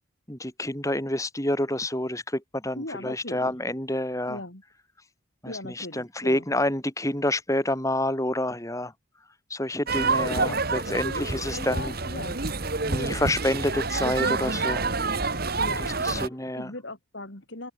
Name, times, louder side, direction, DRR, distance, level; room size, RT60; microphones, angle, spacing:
voice 1, 0.3-4.4 5.4-8.9 9.5-11.9 12.9-14.9 15.8-16.7, left 1 dB, 15° left, 3.7 m, -28 dB
voice 2, 2.8-3.5 4.3-4.6 5.5-6.4 10.3-12.4 15.6-16.3 16.6-17.7, left 2 dB, 55° left, 3.5 m, -39 dB
sound 1, 9.9-16.3, right 3 dB, 45° right, 2.1 m, -27 dB
head